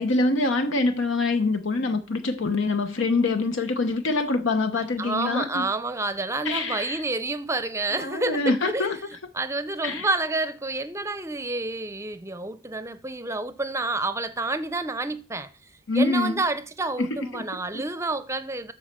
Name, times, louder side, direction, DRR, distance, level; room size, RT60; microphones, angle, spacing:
voice 1, 0.0-5.7 6.4-7.0 7.9-9.0 9.8-10.1 15.9-16.4 17.0-17.4 17.7-17.9, left 3 dB, 65° left, 0.8 m, -25 dB
voice 2, 5.0-8.9 9.3-15.5 15.9-18.7, right 2 dB, 15° right, 0.7 m, -29 dB
12.5 x 4.3 x 7.4 m
head